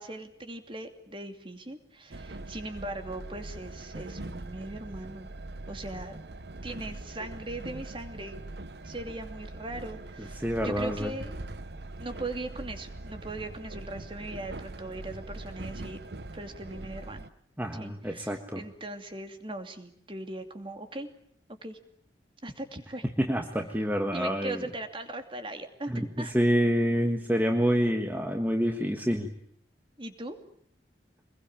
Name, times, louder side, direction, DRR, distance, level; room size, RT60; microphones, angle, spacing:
voice 1, 0.0-5.3 5.7-6.2 6.6-8.4 8.8-11.4 12.0-16.0 16.3-17.2 17.7-21.1 21.6-21.8 22.4-23.0 24.1-26.3 30.0-30.4, right 1 dB, 30° right, 7 dB, 2.7 m, -39 dB
Train, 2.1-17.3, right 2 dB, 65° right, 1.1 m, -42 dB
voice 2, 10.4-11.1 17.6-18.6 23.2-24.6 25.9-26.1 26.3-29.3, equal, 10° right, 4 dB, 1.5 m, -27 dB
25.5 x 21.5 x 8.9 m, 0.64 s
head